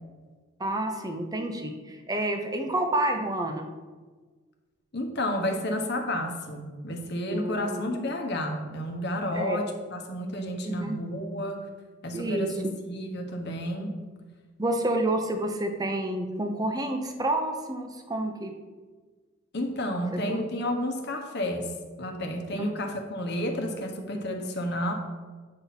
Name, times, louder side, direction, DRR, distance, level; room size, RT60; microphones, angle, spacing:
voice 1, 0.6-3.7 7.3-7.8 9.3-9.6 10.6-11.0 12.1-12.7 14.6-18.5 20.1-20.4 22.5-22.7, right 1 dB, 20° right, 4 dB, 0.8 m, -29 dB
voice 2, 4.9-11.7 12.0-13.9 19.5-24.9, left 1 dB, 55° left, 3 dB, 1.2 m, -31 dB
8.7 x 4.3 x 5.8 m, 1.4 s
head